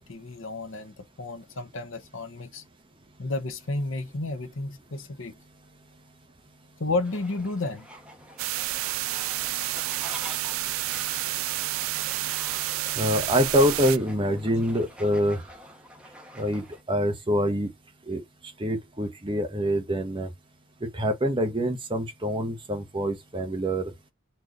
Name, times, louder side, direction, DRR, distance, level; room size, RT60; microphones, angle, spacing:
voice 1, 0.0-2.6 3.2-5.4 6.8-7.9, left 2 dB, 70° left, 1.0 m, -32 dB
Fowl, 7.0-16.8, equal, 5° right, 1.2 m, -46 dB
sound 1, 8.4-14.0, right 15 dB, 80° right, 0.4 m, -30 dB
voice 2, 13.0-15.4 16.4-17.7 18.1-18.2 18.6-20.3 20.9-23.9, equal, 25° right, 1.0 m, -25 dB
4.3 x 3.1 x 3.8 m
head